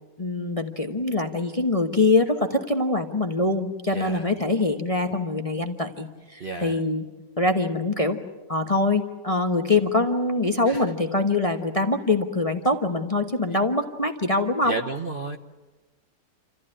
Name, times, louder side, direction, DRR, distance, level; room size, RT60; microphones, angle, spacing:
voice 1, 0.2-7.1 7.4-8.2 8.5-14.7, left 2 dB, 25° left, 6 dB, 0.9 m, -24 dB
voice 2, 3.9-4.2 6.4-6.8 10.7-10.8 13.5-13.6 14.6-15.4, right 2 dB, 40° right, 4 dB, 0.9 m, -31 dB
28.0 x 14.5 x 9.9 m, 1.2 s
omnidirectional pair, 1.9 m